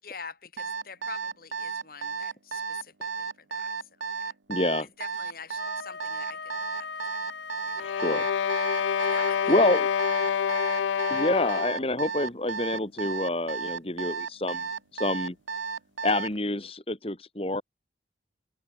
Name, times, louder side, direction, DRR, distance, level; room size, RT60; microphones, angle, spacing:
voice 1, 0.0-3.7 4.1-4.3 5.0-7.4 7.6-7.9 9.0-9.9, left 5 dB, 50° left, 5.7 m, -46 dB
Alarm, 0.6-16.4, right 5 dB, 90° right, 1.1 m, -33 dB
voice 2, 4.5-4.9 7.8-8.2 9.5-9.9 11.1-14.7 14.9-15.4 16.0-17.6, left 1 dB, 30° left, 2.7 m, -27 dB
Wind instrument woodwind instrument, 5.5-10.4, left 5 dB, 70° left, 1.5 m, -39 dB
sound 1, 7.8-11.9, left 8 dB, 90° left, 0.4 m, -27 dB
open air
head